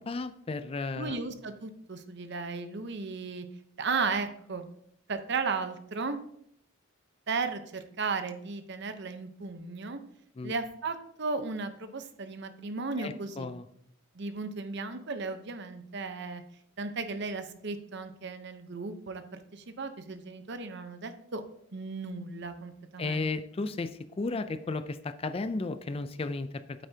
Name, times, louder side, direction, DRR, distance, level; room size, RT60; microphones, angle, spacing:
voice 1, 0.0-1.2 10.4-10.5 13.0-13.7 23.0-26.9, left 3 dB, 30° left, 12 dB, 0.4 m, -34 dB
voice 2, 1.0-3.5 3.8-4.7 5.1-6.2 7.3-10.0 10.4-13.5 14.1-16.4 16.8-21.4 21.7-23.2, right 4 dB, 55° right, 9 dB, 0.8 m, -35 dB
9.0 x 8.4 x 2.8 m, 0.70 s
head